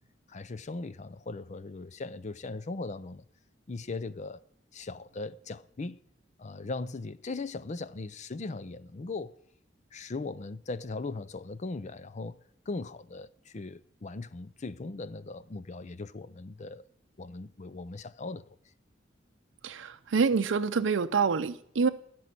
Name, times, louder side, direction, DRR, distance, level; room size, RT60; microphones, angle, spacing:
voice 1, 0.3-3.2 3.7-4.4 4.7-6.0 6.4-9.3 9.9-12.4 12.7-16.8 17.2-18.6, left 3 dB, 40° left, 0.5 m, -39 dB
voice 2, 19.6-21.9, right 5 dB, 85° right, 0.5 m, -26 dB
15.0 x 6.2 x 8.3 m
head